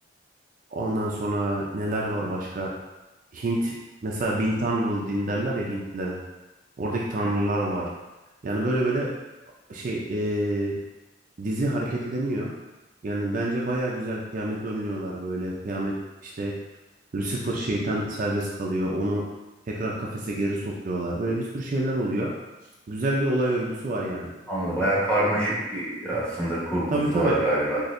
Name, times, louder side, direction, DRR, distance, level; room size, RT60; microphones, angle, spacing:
voice 1, 0.7-2.7 3.3-3.7 4.0-6.2 6.8-7.8 8.4-9.1 9.7-10.7 11.4-12.5 13.0-15.9 16.2-16.5 17.1-19.2 19.7-22.3 22.9-24.3 26.9-27.4, right 1 dB, 45° right, -3 dB, 0.4 m, -27 dB
voice 2, 24.5-27.8, right 1 dB, 5° left, -8 dB, 1.0 m, -26 dB
4.1 x 2.7 x 2.5 m, 1.1 s
head